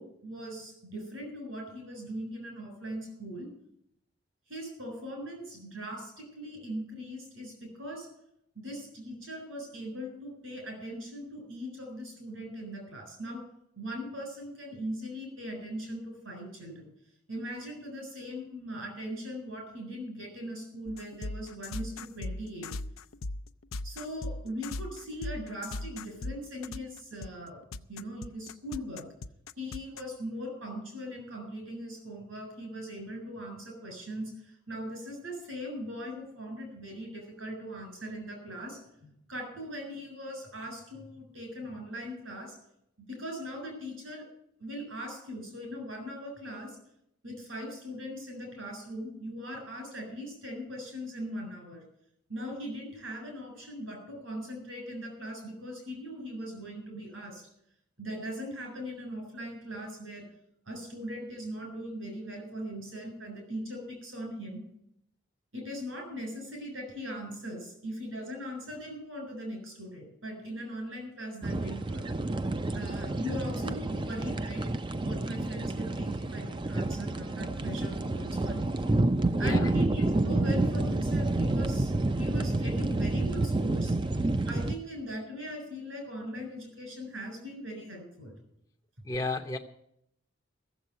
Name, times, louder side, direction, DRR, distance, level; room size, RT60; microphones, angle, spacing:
voice 1, 0.0-3.5 4.5-8.1 8.6-13.4 13.8-16.8 17.3-22.7 23.8-29.0 29.6-42.5 43.0-44.2 44.6-46.8 47.2-51.8 52.3-57.4 58.0-60.2 60.6-64.6 65.5-72.0 72.7-74.6 75.0-78.8 79.4-83.9 84.5-88.4, equal, 75° right, 2 dB, 7.3 m, -40 dB
sound 1, 20.9-30.0, left 2 dB, 85° left, 0.6 m, -38 dB
sound 2, 71.4-84.7, right 2 dB, 25° right, 0.5 m, -29 dB
voice 2, 89.0-89.6, left 2 dB, 15° left, 0 dB, 0.6 m, -32 dB
14.0 x 7.6 x 9.3 m, 0.74 s
head